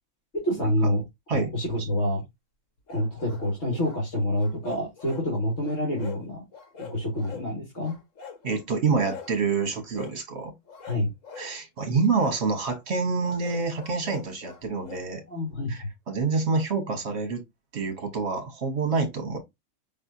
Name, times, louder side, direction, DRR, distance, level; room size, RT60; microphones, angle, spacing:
voice 1, 0.3-1.0 1.3-2.2 2.9-6.4 6.8-7.9 10.8-11.1 15.3-15.9, equal, 60° left, 2.2 m, -27 dB
sound 1, 2.9-4.0 4.3-5.3 5.6-6.2 6.5-7.5 7.8-8.6 9.1-9.4 9.9-10.2 10.7-11.5 12.2-12.4 13.2-15.1, left 6 dB, 80° left, 1.5 m, -43 dB
voice 2, 8.4-10.5 11.4-15.2 15.7-17.4 17.7-19.4, right 4 dB, 55° right, 1.5 m, -27 dB
5.2 x 3.3 x 2.7 m
omnidirectional pair, 1.3 m